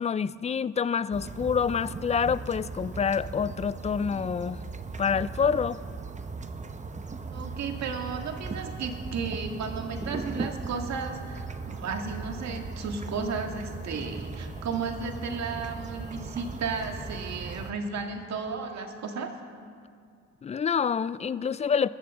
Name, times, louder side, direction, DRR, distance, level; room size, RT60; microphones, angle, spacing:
voice 1, 0.0-4.6 5.0-5.8 20.4-21.9, left 6 dB, 25° left, 17 dB, 0.3 m, -27 dB
sound 1, 1.1-17.7, right 4 dB, 25° right, 0.8 m, -38 dB
voice 2, 7.3-19.3, right 5 dB, 65° right, 4 dB, 1.8 m, -34 dB
22.0 x 13.5 x 3.7 m, 2.2 s
cardioid pair, 90°, 30 cm